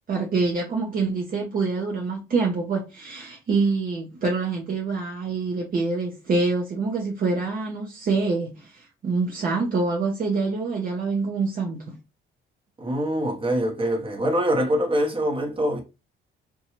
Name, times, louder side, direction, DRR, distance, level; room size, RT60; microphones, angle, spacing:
voice 1, 0.1-12.0, right 4 dB, 45° right, 0.6 m, -26 dB
voice 2, 12.8-15.8, equal, 25° right, 0.9 m, -24 dB
2.6 x 2.3 x 2.8 m
cardioid pair, 90°, 20 cm